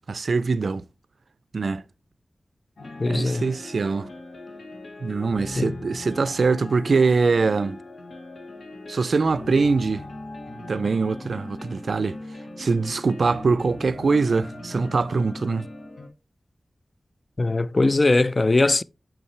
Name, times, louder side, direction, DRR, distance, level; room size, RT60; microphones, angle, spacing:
voice 1, 0.1-0.9 1.5-1.8 3.0-4.1 5.0-7.8 8.9-10.1 10.7-12.2 12.6-15.7, right 4 dB, 75° right, 0.4 m, -23 dB
sound 1, 2.8-16.1, left 2 dB, 70° left, 1.3 m, -39 dB
voice 2, 3.0-3.4 5.6-5.7 17.4-18.8, left 2 dB, 40° left, 0.3 m, -20 dB
7.2 x 5.5 x 3.2 m
wide cardioid pair, 80°, 0 cm